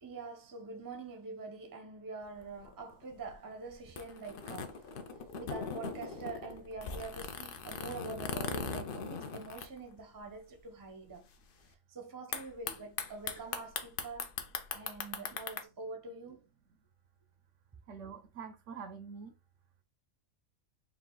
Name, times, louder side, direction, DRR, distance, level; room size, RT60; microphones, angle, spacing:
voice 1, 0.0-4.9 5.3-11.2 11.6-14.3 14.7-16.4, right 3 dB, 20° right, 0.6 m, -45 dB
sound 1, 2.3-10.3 10.6-10.7 10.9-11.3 12.3-15.6, left 5 dB, 55° left, 0.6 m, -40 dB
voice 2, 17.9-19.3, right 6 dB, 65° right, 0.9 m, -45 dB
4.7 x 2.4 x 3.8 m
omnidirectional pair, 1.5 m